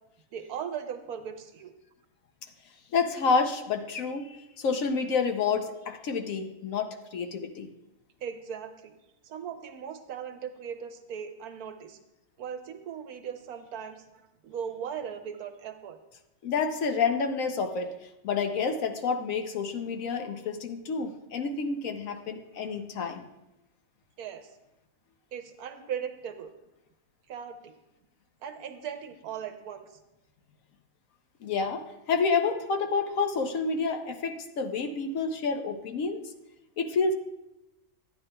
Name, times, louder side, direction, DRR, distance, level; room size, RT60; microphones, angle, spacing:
voice 1, 0.3-1.7 8.2-8.9 9.2-12.0 12.4-16.0 24.2-24.5 25.3-26.5 27.3-27.7 28.4-29.9, right 8 dB, 80° right, 7 dB, 1.2 m, -38 dB
voice 2, 2.9-7.7 16.4-17.9 18.2-23.3 31.4-36.3 36.8-37.1, left 5 dB, 65° left, 6 dB, 1.1 m, -29 dB
12.5 x 9.3 x 2.2 m, 0.93 s
omnidirectional pair, 1.6 m